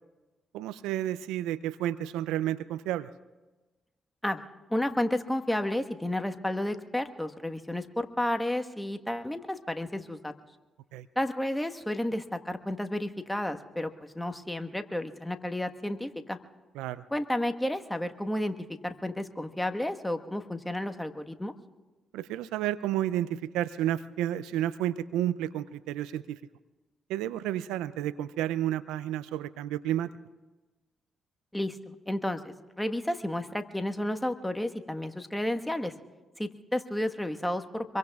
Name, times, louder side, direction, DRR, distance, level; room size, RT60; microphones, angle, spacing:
voice 1, 0.5-3.1 10.9-11.1 16.8-17.0 22.1-26.4 27.1-30.1, right 12 dB, 80° right, 16 dB, 0.4 m, -31 dB
voice 2, 4.2-10.3 11.1-16.4 17.1-18.5 18.8-21.5 31.5-35.9 36.4-38.0, left 1 dB, 10° left, 6 dB, 1.3 m, -32 dB
26.5 x 22.5 x 2.4 m, 1.2 s
hypercardioid pair, 45°, 0 cm